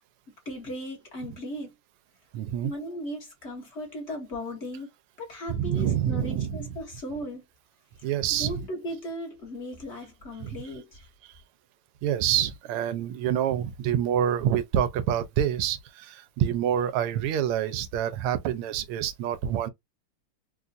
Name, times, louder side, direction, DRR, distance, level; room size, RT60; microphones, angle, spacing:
voice 1, 0.4-1.7 2.6-4.9 5.2-7.4 8.0-8.1 8.4-11.0, equal, 35° left, 1.3 m, -37 dB
voice 2, 2.3-2.7 5.5-6.6 8.0-8.6 10.4-10.6 12.0-19.7, right 10 dB, 85° right, 1.5 m, -27 dB
4.1 x 2.4 x 2.4 m
omnidirectional pair, 2.4 m